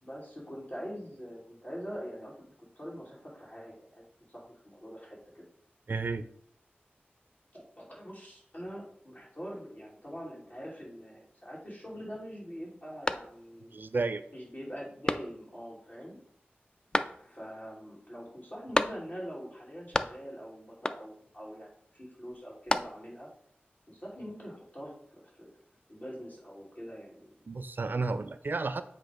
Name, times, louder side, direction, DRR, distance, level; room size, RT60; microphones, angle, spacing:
voice 1, 0.0-2.3 2.8-5.4 7.5-13.7 14.3-16.2 17.2-23.3 23.9-25.5 25.9-27.4, equal, 40° left, -5 dB, 2.7 m, -44 dB
voice 2, 5.9-6.2 13.7-14.2 27.5-28.8, right 3 dB, 55° right, 12 dB, 0.3 m, -32 dB
sound 1, 13.0-13.7 14.2-14.3 15.0-15.7 16.9-17.6 18.7-19.4 19.6-20.4 20.8-21.3 22.3-23.3, left 1 dB, 20° left, 0.3 m, -33 dB
8.0 x 2.8 x 5.0 m, 0.67 s
wide cardioid pair, 75°, 4 cm